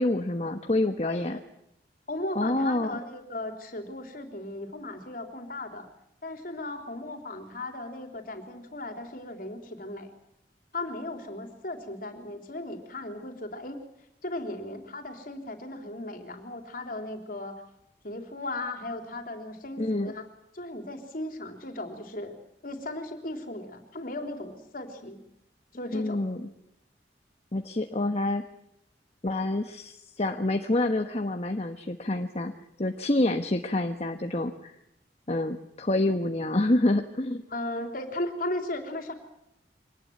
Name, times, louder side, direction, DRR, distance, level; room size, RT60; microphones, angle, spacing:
voice 1, 0.0-1.4 2.3-3.0 19.8-20.1 25.9-26.4 27.5-28.4 29.2-32.5 32.8-34.7 35.3-37.4, left 1 dB, 35° left, 6 dB, 1.2 m, -27 dB
voice 2, 1.1-1.4 2.1-5.9 6.2-10.1 10.7-13.8 14.2-17.6 18.0-20.3 20.5-22.4 22.6-25.2 25.7-26.2 37.5-39.1, left 1 dB, 50° left, 5 dB, 3.6 m, -36 dB
24.5 x 19.0 x 9.4 m, 0.82 s
head